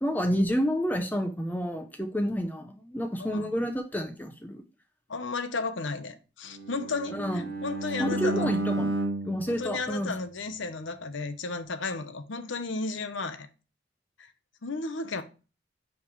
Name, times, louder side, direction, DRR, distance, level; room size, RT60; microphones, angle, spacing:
voice 1, 0.0-4.6 7.1-7.5 8.0-8.9 9.2-10.1, equal, 10° left, 0.6 m, -29 dB
voice 2, 5.1-8.5 9.5-13.5 14.2-14.3 14.6-15.2, left 3 dB, 75° left, 0.9 m, -34 dB
Bowed string instrument, 6.5-10.7, right 1 dB, 55° right, 1.0 m, -33 dB
5.8 x 4.5 x 4.6 m
head